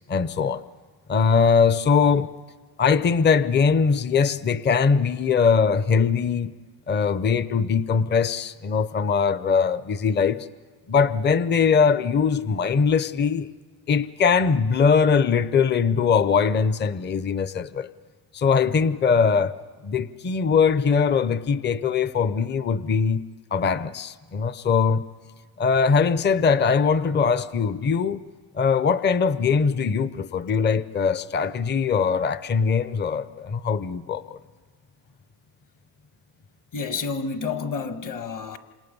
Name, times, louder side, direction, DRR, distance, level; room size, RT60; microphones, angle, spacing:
voice 1, 0.1-0.6 1.1-2.3 2.8-6.6 6.9-10.5 10.9-13.5 13.9-17.9 18.3-19.6 19.8-23.2 23.5-25.0 25.6-28.2 28.5-34.4, left 5 dB, 25° left, 0.7 m, -21 dB
voice 2, 36.7-38.6, left 5 dB, 45° left, 1.7 m, -29 dB
28.5 x 26.5 x 5.4 m
supercardioid pair, 100°, 45 cm